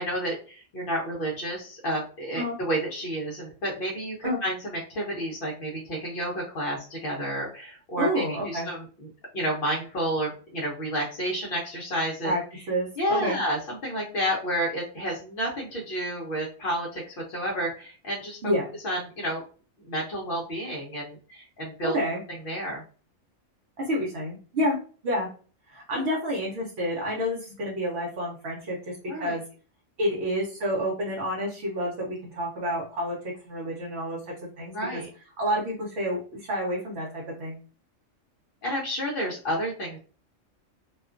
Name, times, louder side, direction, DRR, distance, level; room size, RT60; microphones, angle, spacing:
voice 1, 0.0-9.1 9.3-12.3 13.0-18.4 18.8-19.4 19.8-21.9 22.4-22.8 25.9-26.0 29.1-29.4 34.7-35.1 38.6-40.0, equal, 55° left, -3 dB, 0.7 m, -30 dB
voice 2, 8.0-8.7 12.2-12.4 12.7-13.4 18.4-18.7 21.9-22.2 23.9-24.8 25.0-25.3 25.7-29.4 30.0-33.2 33.5-35.0 35.4-37.6, equal, 60° right, -3 dB, 0.9 m, -29 dB
2.4 x 2.2 x 2.4 m, 0.39 s
omnidirectional pair, 1.3 m